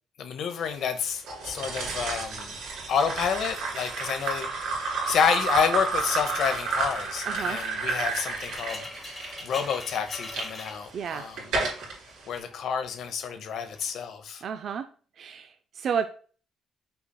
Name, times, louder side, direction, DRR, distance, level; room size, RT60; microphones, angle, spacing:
voice 1, 0.2-2.6 2.9-11.4 12.3-14.4, left 7 dB, 70° left, 8 dB, 0.8 m, -29 dB
sound 1, 1.3-10.4 11.0-11.9, right 3 dB, 85° right, 2.2 m, -31 dB
sound 2, 6.0-11.6 11.9-13.0 13.6-14.0, left 2 dB, 20° left, 1.0 m, -43 dB
voice 2, 7.3-7.6 10.9-11.3 14.4-14.9 15.2-16.1, right 7 dB, 60° right, 8 dB, 0.3 m, -31 dB
5.6 x 4.0 x 2.3 m, 0.41 s
cardioid pair, 90°, 0 cm